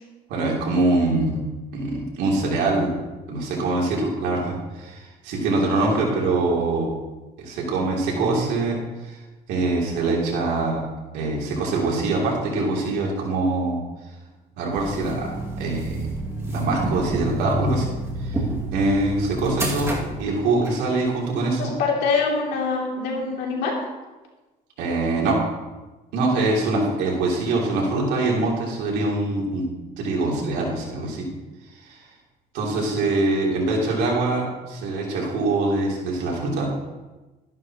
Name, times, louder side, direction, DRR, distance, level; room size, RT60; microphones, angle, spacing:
voice 1, 0.3-1.4 1.7-3.0 3.3-6.9 7.4-9.2 9.5-10.8 11.1-13.8 14.6-16.1 16.5-17.9 18.2-18.4 18.7-19.9 20.2-21.7 24.8-25.4 26.1-29.6 30.0-31.3 31.8-32.0 32.5-36.7, right 2 dB, 85° right, -2 dB, 3.0 m, -24 dB
sound 1, 14.7-20.8, right 1 dB, 15° right, 2.2 m, -29 dB
voice 2, 21.6-23.7, left 4 dB, 85° left, -1 dB, 2.8 m, -24 dB
13.0 x 11.0 x 3.0 m, 1.2 s
cardioid pair, 110°, 17 cm